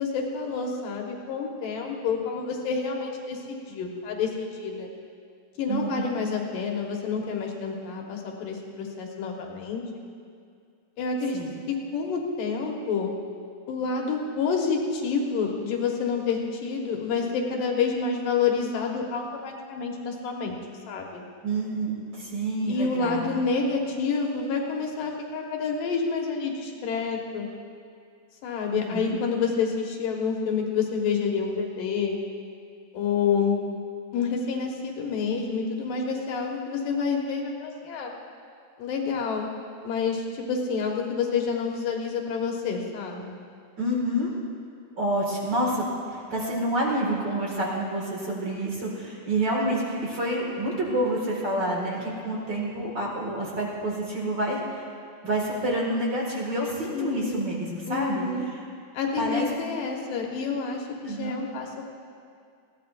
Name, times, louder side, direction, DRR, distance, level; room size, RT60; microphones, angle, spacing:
voice 1, 0.0-4.9 5.6-10.0 11.0-11.4 11.7-13.1 13.7-20.6 20.9-21.2 22.7-27.5 28.4-32.2 32.9-33.6 34.1-38.1 38.8-39.5 39.8-43.4 56.9-57.5 57.9-58.5 58.9-61.8, left 5 dB, 75° left, 0 dB, 3.0 m, -28 dB
voice 2, 5.7-6.0 11.3-11.5 21.4-23.3 28.7-29.2 43.8-44.3 45.0-54.8 55.2-58.3 59.2-59.5 61.1-61.4, right 1 dB, 40° right, -3 dB, 2.0 m, -28 dB
20.5 x 16.0 x 2.5 m, 2.3 s
omnidirectional pair, 4.1 m